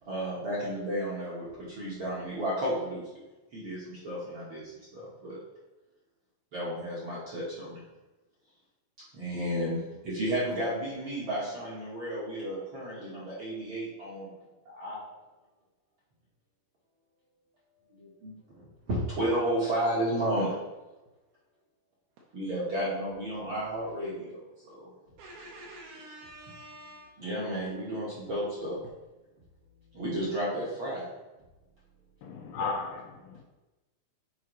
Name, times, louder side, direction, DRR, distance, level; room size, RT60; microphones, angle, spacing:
voice 1, 0.0-3.2 3.5-5.4 6.5-7.8 9.1-14.3 14.6-15.0 17.9-20.6 22.3-24.9 27.2-28.8 29.9-31.1, right 1 dB, 60° right, -7 dB, 1.3 m, -33 dB
voice 2, 25.2-27.2, right 1 dB, 80° right, -4 dB, 2.9 m, -47 dB
voice 3, 32.2-33.4, left 4 dB, 85° left, 2 dB, 2.0 m, -35 dB
10.5 x 4.5 x 3.1 m, 1.1 s
omnidirectional pair, 4.5 m